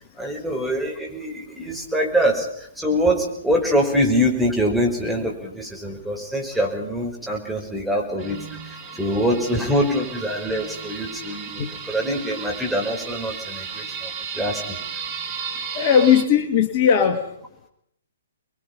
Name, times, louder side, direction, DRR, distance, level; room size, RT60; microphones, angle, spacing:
voice 1, 0.2-14.8, equal, 5° right, 0 dB, 5.5 m, -24 dB
sound 1, 8.2-16.2, right 6 dB, 30° right, 2.8 m, -34 dB
voice 2, 15.7-17.2, left 8 dB, 35° left, 7 dB, 2.2 m, -18 dB
26.5 x 22.5 x 5.6 m, 0.70 s
figure-of-eight pair, 125°, 0 cm